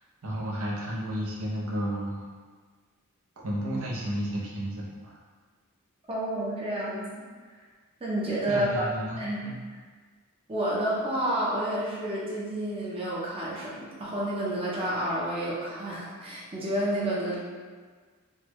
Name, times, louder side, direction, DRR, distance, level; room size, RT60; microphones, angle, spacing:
voice 1, 0.2-2.3 3.4-5.1 8.5-9.6, equal, 70° right, -5 dB, 0.7 m, -32 dB
voice 2, 6.1-7.2 8.0-8.9 9.2-9.4 10.5-17.4, right 1 dB, 25° right, -7 dB, 0.6 m, -30 dB
3.4 x 2.2 x 3.1 m, 1.5 s
head